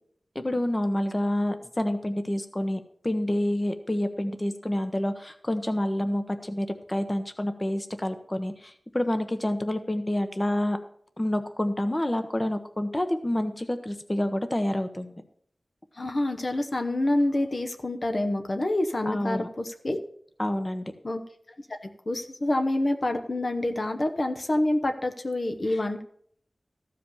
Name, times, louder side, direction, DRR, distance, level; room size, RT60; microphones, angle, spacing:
voice 1, 0.3-10.8 11.2-15.2 19.1-19.5 20.4-20.9 25.7-25.8, left 1 dB, 25° left, 8 dB, 0.9 m, -28 dB
voice 2, 16.0-20.0 21.0-21.2 22.1-26.0, left 1 dB, 50° left, 6 dB, 0.9 m, -27 dB
14.0 x 5.1 x 6.9 m, 0.63 s
wide cardioid pair, 80°, 0 cm